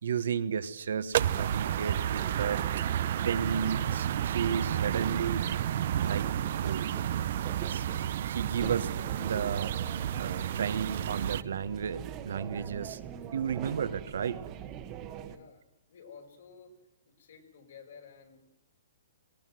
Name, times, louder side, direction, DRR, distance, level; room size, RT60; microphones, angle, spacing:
voice 1, 0.0-2.6 3.2-5.5 6.0-6.3 6.6-6.9 7.7-8.9 9.2-9.7 10.2-13.0 13.3-14.4, right 7 dB, 75° right, 13 dB, 1.5 m, -33 dB
sound 1, 1.1-11.4, right 10 dB, 55° right, 0.7 m, -31 dB
sound 2, 1.2-15.4, right 9 dB, 25° right, 1.4 m, -42 dB
voice 2, 15.2-15.6 15.9-16.7 17.1-18.4, left 6 dB, 70° left, 3 dB, 6.2 m, -52 dB
19.5 x 19.0 x 7.8 m, 0.88 s
hypercardioid pair, 155°, 0 cm